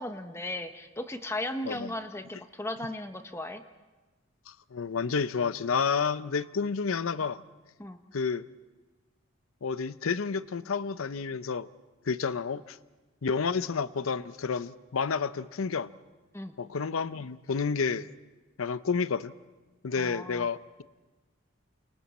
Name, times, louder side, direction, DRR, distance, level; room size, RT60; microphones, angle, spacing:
voice 1, 0.0-3.6 7.8-8.0 16.3-16.5 20.0-20.5, left 1 dB, 10° left, 1.0 m, -36 dB
voice 2, 4.5-7.4 8.1-8.5 9.6-11.7 12.1-12.8 13.2-15.9 16.6-18.1 18.6-19.3 19.8-20.8, left 5 dB, 80° left, 0.6 m, -30 dB
29.0 x 28.0 x 4.2 m
head